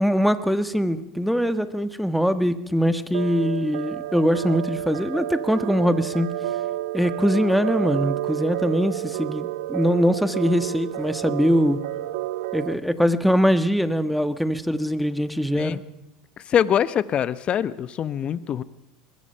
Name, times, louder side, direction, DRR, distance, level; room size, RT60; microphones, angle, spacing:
voice 1, 0.0-6.3 6.9-11.8 12.5-15.8, equal, ahead, 10 dB, 1.4 m, -22 dB
sound 1, 3.1-12.7, right 14 dB, 75° right, 0.9 m, -30 dB
voice 2, 16.5-18.6, left 9 dB, 40° left, 15 dB, 1.0 m, -23 dB
23.5 x 21.0 x 5.7 m, 0.88 s
hypercardioid pair, 95°, 3 cm